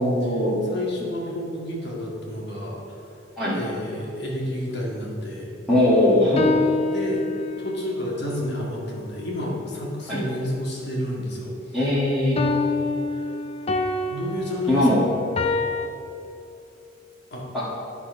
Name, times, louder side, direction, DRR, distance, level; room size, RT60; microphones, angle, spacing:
voice 1, 0.0-0.6 3.4-3.5 5.7-6.5 10.1-10.2 11.7-12.4 14.7-15.1 17.5-17.7, left 1 dB, ahead, -13 dB, 1.8 m, -20 dB
voice 2, 0.7-2.8 3.5-5.5 6.6-11.8 14.1-15.1 17.3-17.7, left 1 dB, 60° left, -3 dB, 1.8 m, -30 dB
sound 1, 5.9-7.8 12.4-15.9, left 3 dB, 30° left, 0.5 m, -26 dB
12.5 x 4.4 x 5.3 m, 2.8 s
head